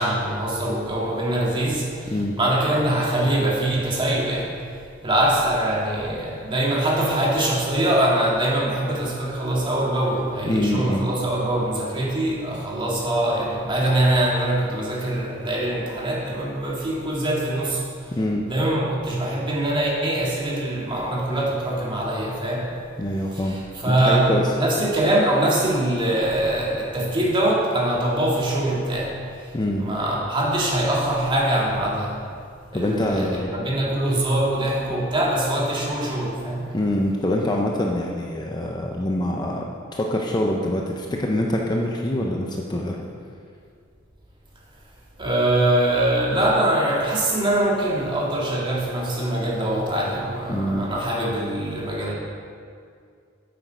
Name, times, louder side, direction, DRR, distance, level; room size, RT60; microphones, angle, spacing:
voice 1, 0.0-2.1 2.4-4.5 5.0-17.8 18.5-22.7 23.3-29.5 29.8-32.2 32.7-36.6 45.2-52.1, right 1 dB, 25° right, -4 dB, 1.9 m, -23 dB
voice 2, 2.1-2.4 10.4-11.1 18.1-18.5 23.0-23.6 23.9-24.5 29.5-29.9 32.7-33.5 36.7-39.6 39.9-43.0 50.5-50.9, left 1 dB, 20° left, 0 dB, 0.6 m, -24 dB
8.9 x 7.8 x 5.1 m, 2.2 s
head